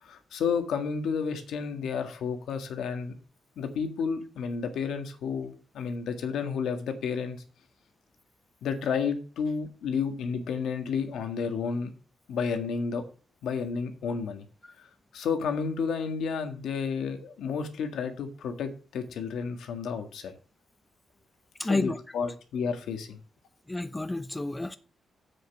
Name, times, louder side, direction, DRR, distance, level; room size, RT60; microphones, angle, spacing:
voice 1, 0.0-3.2 3.6-7.4 8.6-11.9 12.3-13.0 13.4-14.4 14.8-14.9 15.1-20.3 21.6-23.2, left 6 dB, 85° left, 1.7 m, -31 dB
voice 2, 21.6-22.0 23.7-24.8, left 2 dB, 10° left, 0.7 m, -30 dB
7.8 x 6.5 x 5.9 m
cardioid pair, 125°, 0 cm